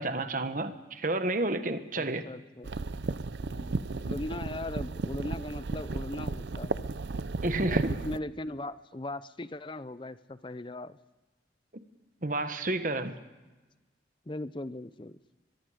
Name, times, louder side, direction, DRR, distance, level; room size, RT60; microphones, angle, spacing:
voice 1, 0.0-2.2 7.4-7.9 12.2-13.1, right 2 dB, 45° right, 1.4 m, -30 dB
voice 2, 2.0-2.7 3.4-6.9 7.6-11.0 14.3-15.2, left 1 dB, 25° left, 0.6 m, -39 dB
sound 1, 2.6-8.2, right 3 dB, 65° right, 0.6 m, -34 dB
22.5 x 22.5 x 5.1 m
head